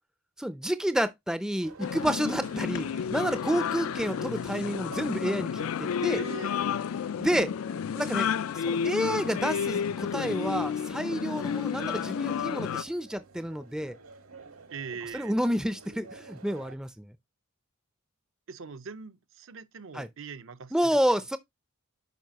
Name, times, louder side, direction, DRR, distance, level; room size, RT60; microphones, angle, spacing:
voice 1, 0.4-6.2 7.2-7.5 7.9-8.3 8.5-14.0 15.1-17.1 19.9-20.1 20.7-21.4, equal, 5° right, 0.4 m, -29 dB
sound 1, 1.6-16.8, right 4 dB, 80° right, 1.8 m, -51 dB
sound 2, 1.8-12.8, left 7 dB, 75° left, 0.4 m, -31 dB
voice 2, 6.2-6.6 14.7-15.4 18.5-21.0, right 5 dB, 65° right, 0.7 m, -41 dB
9.2 x 4.9 x 2.9 m
head